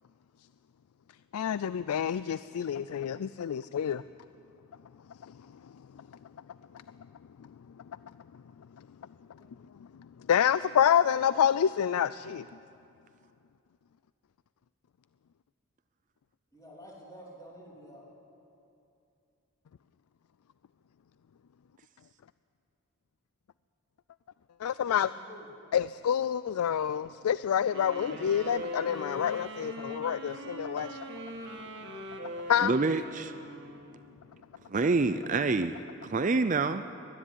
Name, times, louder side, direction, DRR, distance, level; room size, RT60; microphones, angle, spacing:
voice 1, 1.3-4.0 5.2-5.3 10.3-12.5 24.6-25.1 25.7-31.0 32.5-32.7, left 8 dB, 90° left, 16 dB, 0.4 m, -27 dB
voice 2, 16.5-18.0 24.8-25.5, equal, 15° left, -3 dB, 3.3 m, -50 dB
sound 1, 27.7-34.1, right 1 dB, 50° right, 1.9 m, -41 dB
voice 3, 32.6-33.3 34.7-35.8 36.1-36.8, right 3 dB, 35° right, 10 dB, 0.5 m, -27 dB
21.0 x 13.0 x 9.8 m, 2.7 s
head